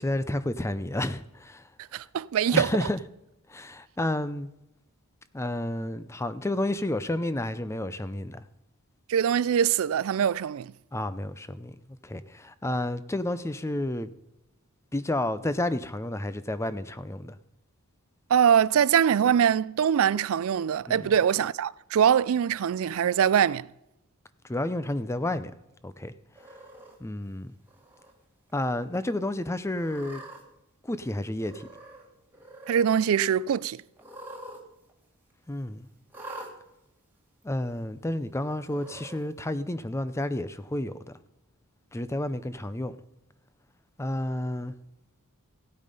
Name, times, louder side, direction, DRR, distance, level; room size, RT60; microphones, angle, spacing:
voice 1, 0.0-1.7 2.5-3.0 3.5-4.5 5.3-8.4 10.9-11.8 12.0-14.1 14.9-17.4 20.9-21.1 24.4-25.5 25.8-26.1 27.0-27.5 28.5-30.2 30.8-31.7 35.5-35.8 37.4-40.9 41.9-43.0 44.0-44.8, left 1 dB, 10° left, 0.5 m, -30 dB
voice 2, 1.9-2.7 9.1-10.7 18.3-23.7 32.7-33.8, right 8 dB, 65° right, 0.3 m, -23 dB
Cat, 26.4-27.0 27.7-28.1 28.5-28.6 29.7-30.4 31.4-32.1 32.3-32.9 34.0-34.6 34.9-35.0 36.1-36.5 37.4-37.5 38.6-39.2, right 1 dB, 10° right, 2.0 m, -44 dB
16.0 x 8.7 x 5.3 m
head